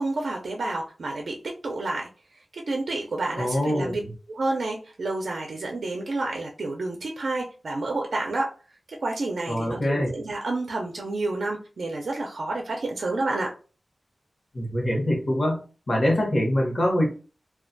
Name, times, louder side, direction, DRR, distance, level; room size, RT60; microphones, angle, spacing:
voice 1, 0.0-2.1 2.5-4.0 4.3-8.5 9.0-13.5, right 2 dB, 85° right, 1 dB, 0.4 m, -29 dB
voice 2, 3.4-4.1 9.5-10.1 14.5-15.6 15.9-17.1, left 1 dB, 50° left, -1 dB, 0.9 m, -24 dB
2.2 x 2.1 x 2.5 m, 0.36 s
wide cardioid pair, 70°, 0 cm